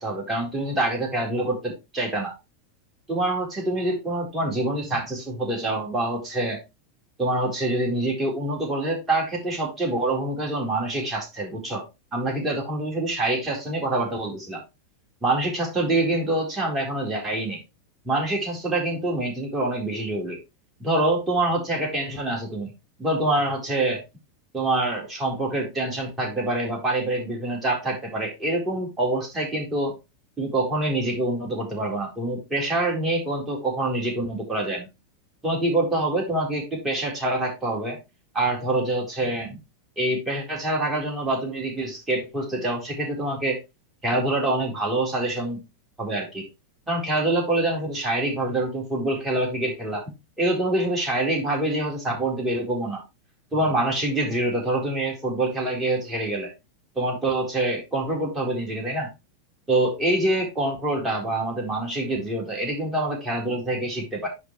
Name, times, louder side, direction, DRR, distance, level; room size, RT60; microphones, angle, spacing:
voice 1, 0.0-2.3 3.1-6.6 7.2-11.8 12.1-14.6 15.2-17.6 18.0-20.4 20.8-22.7 23.0-24.0 24.5-29.9 30.4-34.9 35.4-38.0 38.3-39.6 40.0-43.6 44.0-45.6 46.0-46.5 46.9-50.0 50.4-53.0 53.5-56.5 57.0-59.1 59.7-64.3, right 2 dB, 15° right, -1 dB, 4.1 m, -26 dB
10.5 x 5.0 x 3.2 m, 0.25 s
figure-of-eight pair, 90°, 0 cm